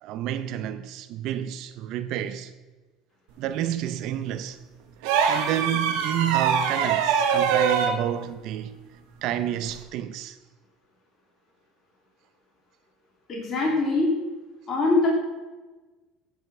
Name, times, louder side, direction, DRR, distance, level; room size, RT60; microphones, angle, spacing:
voice 1, 0.0-2.5 3.4-4.6 5.3-8.7 9.2-10.4, right 11 dB, 60° right, 0.6 m, -29 dB
sound 1, 5.0-8.0 9.7-9.8, right 7 dB, 80° right, 1.4 m, -23 dB
voice 2, 13.3-14.1 14.7-15.1, left 3 dB, 35° left, 2.9 m, -22 dB
13.5 x 5.7 x 6.0 m
cardioid pair, 125°, 0 cm